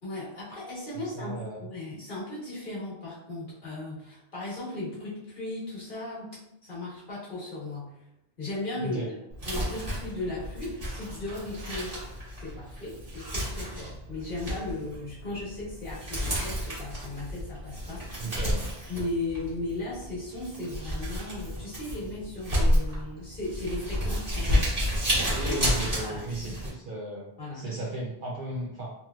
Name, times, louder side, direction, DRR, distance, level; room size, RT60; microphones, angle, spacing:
voice 1, 0.0-6.3 6.6-8.0 8.4-9.1 9.4-11.9 12.3-18.3 18.9-24.7 25.4-25.6 26.0-26.2 27.4-27.7, left 2 dB, 50° left, -7 dB, 1.3 m, -36 dB
voice 2, 0.9-1.6 8.8-9.1 18.2-18.7 25.3-28.9, right 2 dB, 60° right, -3 dB, 0.6 m, -35 dB
Crumpling crinkling, 9.3-26.7, equal, 30° right, 1.4 m, -31 dB
3.0 x 3.0 x 2.3 m, 0.85 s
omnidirectional pair, 1.2 m